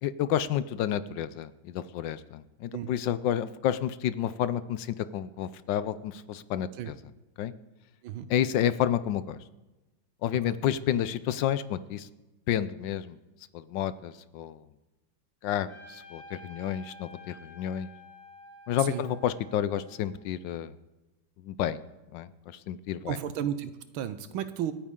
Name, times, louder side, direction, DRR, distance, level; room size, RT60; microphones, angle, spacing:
voice 1, 0.0-7.0 7.4-7.5 8.3-9.4 10.2-12.1 12.5-13.2 13.5-14.6 15.4-17.9 18.7-20.8 21.4-21.8 22.1-23.2, left 10 dB, 75° left, 14 dB, 1.2 m, -30 dB
Trumpet, 15.7-20.4, left 1 dB, 40° left, 5.6 m, -50 dB
voice 2, 23.1-24.7, right 10 dB, 90° right, 12 dB, 1.6 m, -33 dB
26.0 x 9.4 x 3.7 m, 1.1 s
omnidirectional pair, 2.2 m